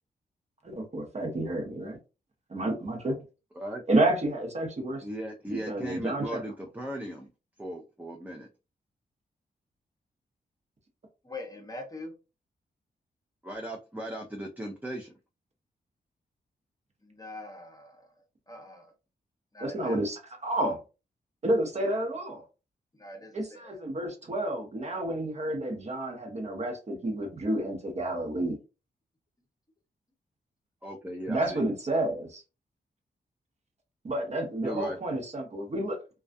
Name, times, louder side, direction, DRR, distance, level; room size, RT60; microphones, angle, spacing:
voice 1, 0.6-2.0 2.5-3.2 3.9-5.0 5.5-6.4 19.6-20.8 21.4-22.4 23.3-28.6 31.3-32.4 34.0-36.0, right 1 dB, 40° right, 0.8 m, -30 dB
voice 2, 5.0-7.3 7.6-8.5 13.4-15.1 30.8-31.6 34.6-35.0, right 1 dB, 10° right, 0.5 m, -37 dB
voice 3, 11.2-12.1 17.0-18.9 19.5-20.0 22.9-23.8, left 2 dB, 20° left, 0.7 m, -44 dB
2.3 x 2.3 x 2.5 m
cardioid pair, 90°, 17 cm